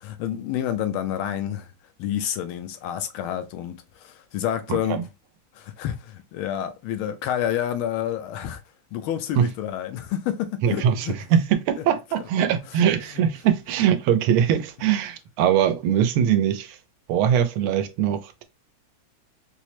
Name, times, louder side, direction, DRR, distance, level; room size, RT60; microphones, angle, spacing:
voice 1, 0.0-1.7 2.0-5.1 5.5-8.6 8.9-11.1 11.8-11.9 12.2-12.3, left 10 dB, 85° left, 1.4 m, -29 dB
voice 2, 4.7-5.0 9.4-9.5 10.6-16.8 17.1-18.4, right 9 dB, 85° right, 1.5 m, -22 dB
4.6 x 2.1 x 2.8 m
omnidirectional pair, 2.3 m